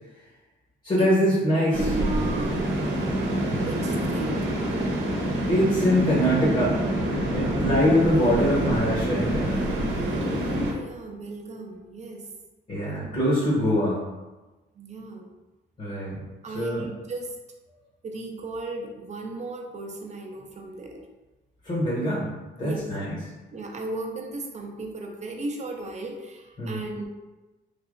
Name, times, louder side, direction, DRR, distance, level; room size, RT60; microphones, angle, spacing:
voice 1, 0.8-1.9 3.5-3.7 5.5-6.8 7.3-9.8 12.7-14.0 15.8-16.2 16.5-16.8 21.6-22.3 22.6-23.2 26.6-26.7, equal, 35° left, -5 dB, 1.0 m, -23 dB
voice 2, 1.6-2.7 3.6-4.5 10.3-12.3 12.8-13.2 14.8-15.3 16.4-17.4 18.0-21.1 22.6-22.9 23.5-27.1, right 2 dB, 35° right, 1 dB, 0.6 m, -35 dB
sound 1, 1.7-10.7, right 1 dB, 70° right, 0.8 m, -26 dB
3.3 x 2.7 x 2.5 m, 1.1 s
cardioid pair, 90°, 20 cm